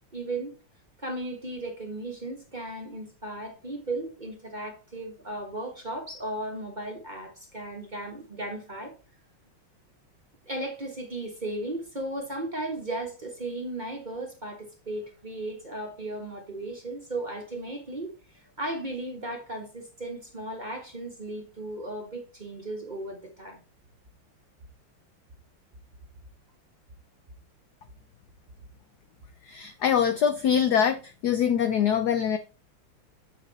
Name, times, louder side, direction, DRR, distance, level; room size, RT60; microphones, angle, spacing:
voice 1, 0.1-0.5 1.0-8.9 10.4-23.6, right 1 dB, 25° right, 1.2 m, -36 dB
voice 2, 29.4-32.4, left 8 dB, 75° left, 0.9 m, -24 dB
7.6 x 5.7 x 4.1 m
omnidirectional pair, 2.4 m